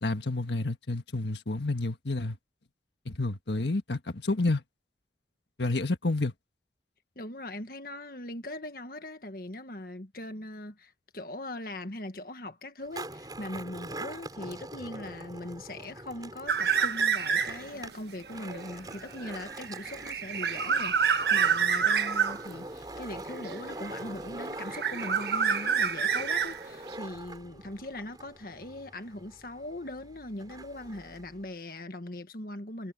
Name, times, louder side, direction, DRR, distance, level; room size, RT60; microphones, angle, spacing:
voice 1, 0.0-2.4 3.0-4.6 5.6-6.3, left 2 dB, 75° left, 1.6 m, -29 dB
voice 2, 7.1-32.9, left 1 dB, 55° left, 1.6 m, -40 dB
Skateboard, 12.8-31.4, right 2 dB, 20° right, 6.8 m, -44 dB
sound 1, 16.5-17.8 18.2-22.4 23.5-24.2 24.5-26.9, right 7 dB, 65° right, 1.5 m, -28 dB
head